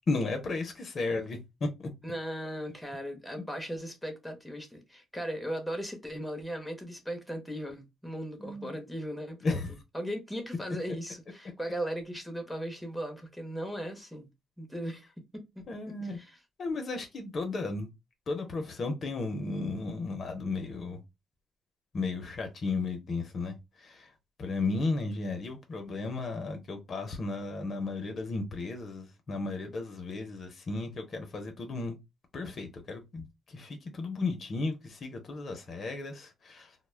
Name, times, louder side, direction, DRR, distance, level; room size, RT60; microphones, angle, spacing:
voice 1, 0.1-1.4 1.8-1.9 8.4-8.8 9.4-9.7 15.7-16.2 16.6-17.9 18.3-21.0 21.9-24.1 24.4-32.0 32.3-36.7, left 3 dB, 50° left, 0.6 m, -34 dB
voice 2, 2.0-9.6 9.9-14.3 14.6-15.1 15.3-16.4, equal, ahead, 0.7 m, -37 dB
2.1 x 2.0 x 3.1 m
cardioid pair, 90°, 0 cm